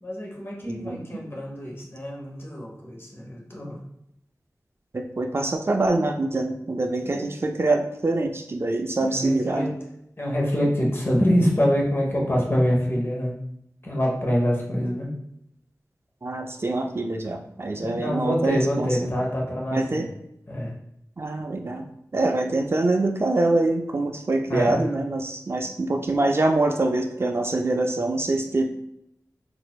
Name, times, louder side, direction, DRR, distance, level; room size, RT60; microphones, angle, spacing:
voice 1, 0.0-3.8 7.0-7.2 9.0-9.8 10.2-13.4 13.8-15.1 17.7-20.1 20.5-20.7 24.5-24.9, equal, 40° left, -2 dB, 1.0 m, -25 dB
voice 2, 0.7-1.0 4.9-9.7 16.2-18.9 19.7-20.1 21.2-21.9 22.1-28.6, right 2 dB, 40° right, 3 dB, 0.4 m, -24 dB
4.0 x 2.6 x 2.3 m, 0.78 s
wide cardioid pair, 55°, 6 cm